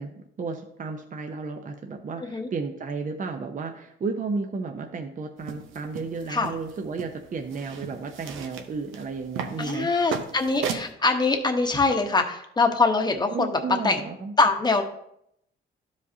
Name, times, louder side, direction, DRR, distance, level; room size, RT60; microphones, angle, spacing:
voice 1, 0.0-9.9 13.3-14.3, right 4 dB, 40° right, 4 dB, 0.8 m, -33 dB
sound 1, 5.4-10.9, right 6 dB, 85° right, 0.8 m, -36 dB
voice 2, 9.6-14.0 14.4-14.8, left 3 dB, 20° left, 4 dB, 1.1 m, -23 dB
12.5 x 5.1 x 2.7 m, 0.74 s
cardioid pair, 90°, 20 cm